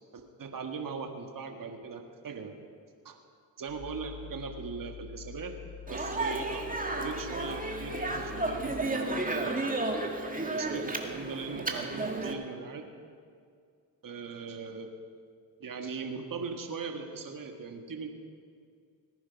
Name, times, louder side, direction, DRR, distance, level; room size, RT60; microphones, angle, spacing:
voice 1, 0.1-2.6 3.0-3.2 3.6-5.6 5.9-9.8 10.3-12.8 14.0-14.9 15.6-18.1, right 5 dB, 45° right, 4 dB, 1.7 m, -39 dB
sound 1, 3.7-8.8, left 9 dB, 75° right, 4.2 m, -46 dB
Speech, 5.9-12.3, right 2 dB, 20° right, 2.0 m, -33 dB
18.5 x 10.0 x 5.8 m, 2.2 s
supercardioid pair, 50°, 46 cm